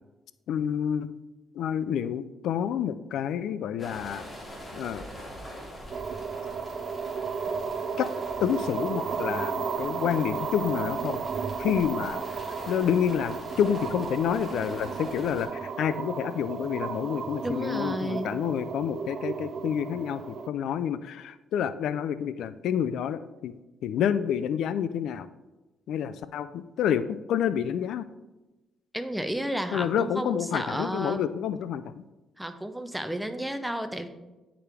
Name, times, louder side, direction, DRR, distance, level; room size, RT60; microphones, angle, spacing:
voice 1, 0.5-1.1 1.5-4.3 4.7-5.1 8.0-8.1 8.4-11.2 11.6-12.2 12.7-23.5 23.8-25.3 25.9-28.1 29.7-32.0, left 9 dB, 80° left, 14 dB, 0.3 m, -28 dB
sound 1, 3.8-15.5, equal, 25° left, 2.3 m, -43 dB
sound 2, 5.9-20.5, right 6 dB, 50° right, 0.4 m, -34 dB
voice 2, 17.4-18.3 28.9-31.2 32.4-34.1, right 1 dB, 5° right, 8 dB, 0.7 m, -32 dB
10.0 x 4.8 x 3.4 m, 1.1 s
cardioid pair, 90°, 0 cm